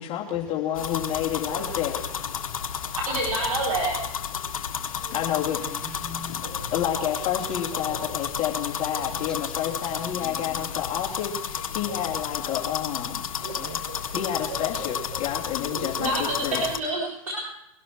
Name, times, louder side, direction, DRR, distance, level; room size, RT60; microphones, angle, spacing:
voice 1, 0.0-2.0 5.1-5.6 6.7-13.3 14.1-16.6, left 10 dB, 40° left, 3.1 m, -29 dB
voice 2, 0.6-1.0 1.5-1.6 3.0-4.0 5.0-5.1 6.4-6.6 7.0-7.1 7.9-8.0 8.9-9.4 9.7-10.0 11.9-12.0 13.4-14.6 15.7-17.5, right 2 dB, 90° right, 4.4 m, -31 dB
sound 1, 0.8-16.8, left 7 dB, 80° left, 1.6 m, -32 dB
voice 3, 2.4-3.0 5.4-6.5 10.2-10.8 13.5-13.9, left 2 dB, 5° left, 3.1 m, -44 dB
22.5 x 12.5 x 4.7 m
hypercardioid pair, 105°, 17 cm